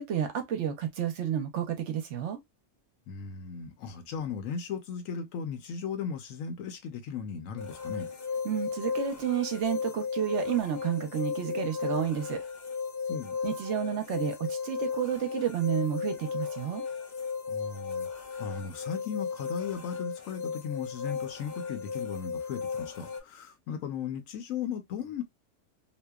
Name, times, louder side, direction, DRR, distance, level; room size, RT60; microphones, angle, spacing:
voice 1, 0.0-2.4 8.4-12.4 13.4-16.8, right 9 dB, 65° right, 0.8 m, -31 dB
voice 2, 3.1-8.1 13.1-13.4 17.5-25.2, left 7 dB, 75° left, 1.0 m, -37 dB
sound 1, 7.6-23.2, left 5 dB, 50° left, 0.5 m, -35 dB
2.8 x 2.1 x 2.2 m
omnidirectional pair, 1.4 m